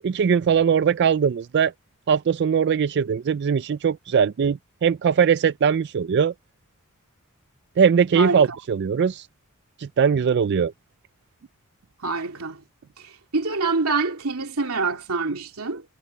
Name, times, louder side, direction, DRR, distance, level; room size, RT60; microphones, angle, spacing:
voice 1, 0.0-1.7 2.1-6.3 7.8-9.3 9.8-10.7, right 7 dB, 50° right, 0.4 m, -20 dB
voice 2, 8.1-8.6 12.0-12.6 13.0-15.8, right 3 dB, 90° right, 2.6 m, -26 dB
head